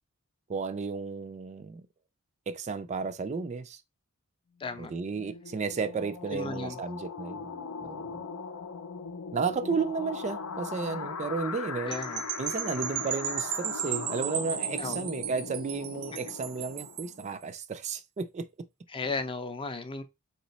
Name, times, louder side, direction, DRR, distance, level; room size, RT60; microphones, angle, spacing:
voice 1, 0.5-1.8 2.5-3.8 4.8-7.5 7.8-8.2 9.3-11.9 12.4-18.5, right 5 dB, 30° right, 0.3 m, -33 dB
voice 2, 4.6-4.9 6.3-6.8 11.9-12.2 14.8-15.0 16.1-16.2 18.9-20.0, left 3 dB, 25° left, 0.5 m, -35 dB
sound 1, 4.9-17.3, left 5 dB, 85° left, 0.6 m, -40 dB
sound 2, 11.9-17.2, right 10 dB, 75° right, 0.6 m, -35 dB
3.9 x 3.0 x 4.0 m
head